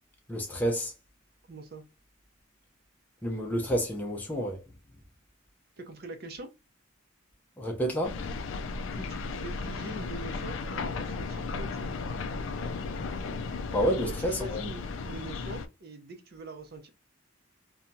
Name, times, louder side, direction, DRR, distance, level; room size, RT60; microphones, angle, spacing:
voice 1, 0.3-0.9 3.2-4.6 7.6-8.2 13.7-14.6, equal, 10° left, 0.5 m, -29 dB
voice 2, 1.5-1.8 5.8-6.5 8.9-12.0 13.9-16.9, right 1 dB, 50° right, 0.6 m, -43 dB
sound 1, 8.0-15.7, left 4 dB, 70° left, 0.3 m, -35 dB
2.8 x 2.2 x 2.5 m
head